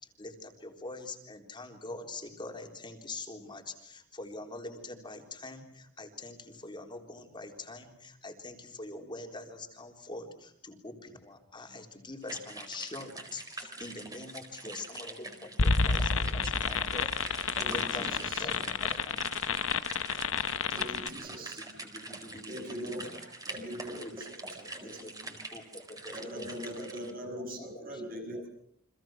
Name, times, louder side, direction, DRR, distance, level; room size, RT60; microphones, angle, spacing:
voice 1, 0.0-17.1 17.4-19.2 21.1-21.3 21.6-22.9 24.0-24.1 24.8-26.7 27.4-28.4, left 2 dB, 25° left, 3 dB, 3.7 m, -44 dB
sound 1, 12.2-27.1, right 2 dB, 20° right, 4.3 m, -44 dB
sound 2, 15.6-21.1, left 5 dB, 70° left, 1.0 m, -29 dB
voice 2, 17.6-18.7 20.7-21.6 22.5-23.2 23.4-24.3 24.5-25.1 26.1-28.5, equal, 45° right, 4 dB, 6.9 m, -41 dB
voice 3, 22.7-23.8, right 2 dB, 85° right, 7 dB, 6.2 m, -65 dB
30.0 x 26.0 x 6.2 m, 0.67 s
head